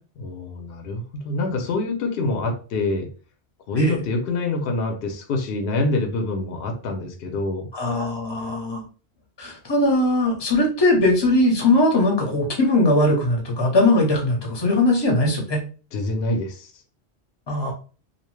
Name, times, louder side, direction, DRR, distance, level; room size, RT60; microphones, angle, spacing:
voice 1, 0.2-3.1 3.7-7.7 15.9-16.7, left 2 dB, 65° left, 3 dB, 0.7 m, -26 dB
voice 2, 7.7-8.8 9.4-15.6 17.5-17.7, left 1 dB, 25° left, 0 dB, 0.6 m, -20 dB
2.7 x 2.1 x 3.0 m, 0.38 s
omnidirectional pair, 1.3 m